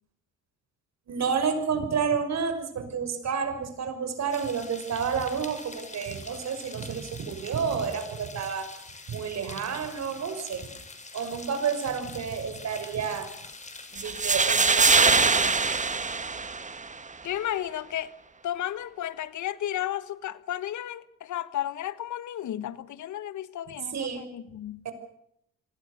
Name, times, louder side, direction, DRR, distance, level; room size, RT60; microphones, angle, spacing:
voice 1, 1.1-8.7 9.1-10.7 11.1-13.3 13.9-15.3 23.9-24.3 24.8-24.9, right 6 dB, 60° right, 5.9 m, -30 dB
sound 1, 4.3-16.0, left 3 dB, 25° left, 5.9 m, -45 dB
sound 2, 14.0-17.0, right 4 dB, 25° right, 1.7 m, -22 dB
voice 2, 17.2-18.1 18.4-24.8, left 12 dB, 75° left, 1.5 m, -33 dB
27.0 x 21.0 x 6.7 m
cardioid pair, 90°, 30 cm